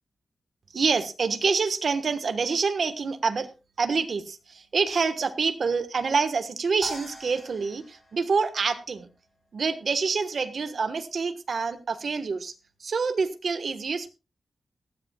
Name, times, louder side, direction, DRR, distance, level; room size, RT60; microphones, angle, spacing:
voice 1, 0.7-3.5 3.8-9.1 9.5-12.5 12.8-14.1, right 5 dB, 50° right, 10 dB, 1.3 m, -27 dB
sound 1, 6.8-9.2, equal, 15° left, 4.7 m, -42 dB
18.0 x 13.0 x 2.3 m, 0.28 s
wide cardioid pair, 165°, 0 cm